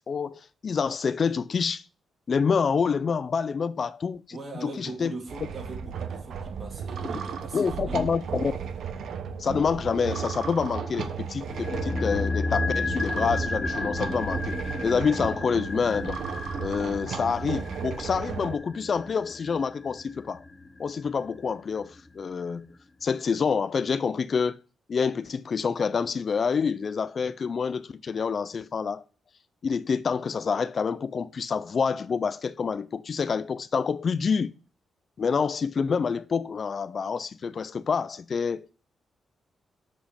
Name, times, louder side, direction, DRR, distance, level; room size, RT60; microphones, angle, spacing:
voice 1, 0.1-1.8 2.3-4.2 4.6-5.1 7.5-8.5 9.4-14.6 14.8-16.2 16.6-20.4 20.8-22.6 23.0-24.6 24.9-29.0 29.6-34.5 35.2-38.8, left 6 dB, 45° left, 0.4 m, -27 dB
voice 2, 4.3-8.0, right 3 dB, 45° right, 2.9 m, -40 dB
sound 1, 5.3-18.6, right 7 dB, 75° right, 1.0 m, -34 dB
sound 2, 11.5-21.7 22.0-22.1, left 3 dB, 20° left, 0.7 m, -33 dB
7.5 x 5.1 x 5.1 m
cardioid pair, 115°, 0 cm